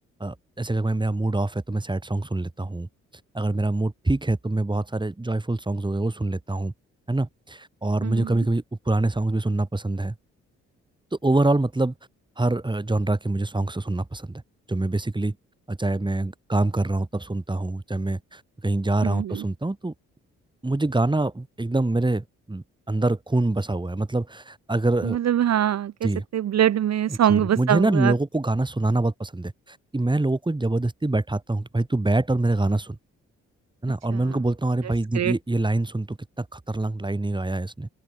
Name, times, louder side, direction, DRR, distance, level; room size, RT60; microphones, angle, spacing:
voice 1, 0.2-2.9 3.3-6.7 7.1-10.1 11.2-11.9 12.4-14.4 14.7-15.4 15.7-19.9 20.6-25.2 26.0-26.2 27.1-33.0 33.8-37.9, right 2 dB, 15° right, 2.5 m, -25 dB
voice 2, 8.0-8.4 19.0-19.4 25.0-28.1 34.1-34.2 35.1-35.3, right 10 dB, 55° right, 0.9 m, -23 dB
open air
hypercardioid pair, 50°, 32 cm